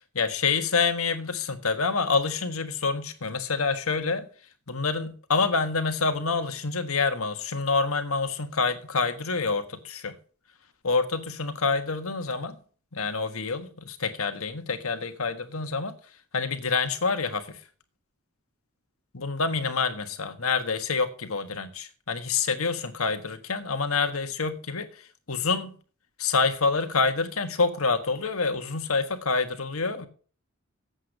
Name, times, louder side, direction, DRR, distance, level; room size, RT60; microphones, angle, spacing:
voice 1, 0.1-4.2 4.7-10.2 10.8-12.6 12.9-16.0 16.3-17.6 19.1-25.8 26.2-30.1, left 4 dB, 85° left, 1.4 m, -27 dB
8.0 x 8.0 x 6.6 m
head